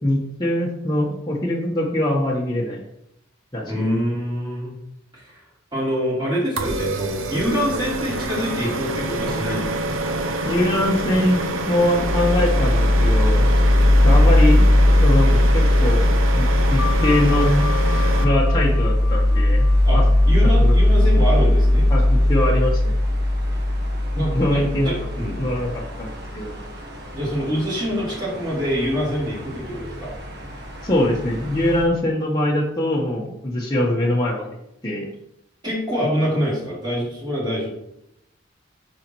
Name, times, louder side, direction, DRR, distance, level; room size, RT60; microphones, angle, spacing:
voice 1, 0.0-2.8 3.5-3.9 10.4-11.4 11.7-13.5 14.0-14.6 15.0-16.0 16.4-17.6 17.9-19.7 19.9-20.0 20.6-20.7 21.9-22.9 24.2-24.9 25.4-25.7 26.0-26.1 26.3-26.6 30.8-34.5 34.8-35.1, left 1 dB, 20° left, -4 dB, 1.1 m, -22 dB
voice 2, 3.7-4.7 5.1-5.4 5.7-10.0 15.3-15.4 19.8-20.0 20.2-21.9 24.1-25.5 27.1-30.1 35.6-37.7, equal, 20° right, -10 dB, 3.2 m, -25 dB
sound 1, 6.6-18.2, right 1 dB, 80° right, 0.7 m, -26 dB
sound 2, 11.9-31.8, left 1 dB, 55° right, 1.5 m, -19 dB
sound 3, 16.8-22.0, left 12 dB, 70° left, 0.9 m, -34 dB
9.3 x 6.4 x 3.1 m, 0.81 s
head